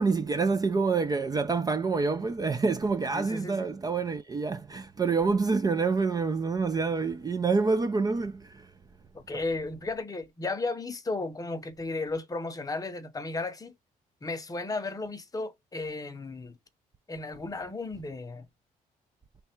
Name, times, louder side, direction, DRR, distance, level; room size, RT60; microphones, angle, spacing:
voice 1, 0.0-8.7, right 4 dB, 25° right, 0.5 m, -27 dB
voice 2, 3.1-3.7 9.1-13.7 14.2-16.6 17.1-18.5, left 3 dB, 25° left, 0.8 m, -34 dB
3.3 x 2.3 x 4.3 m
cardioid pair, 100°, 15 cm